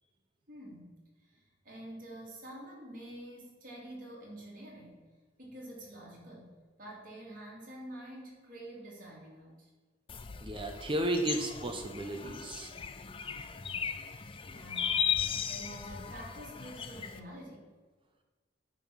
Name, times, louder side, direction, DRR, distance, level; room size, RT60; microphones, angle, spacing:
voice 1, 0.5-5.0 5.4-9.7 14.5-17.7, right 1 dB, 45° right, -4 dB, 2.4 m, -48 dB
sound 1, 10.1-17.2, left 7 dB, 30° left, 0.4 m, -37 dB
voice 2, 10.4-12.7, right 1 dB, 25° right, 4 dB, 0.7 m, -33 dB
9.2 x 3.8 x 6.2 m, 1.4 s
head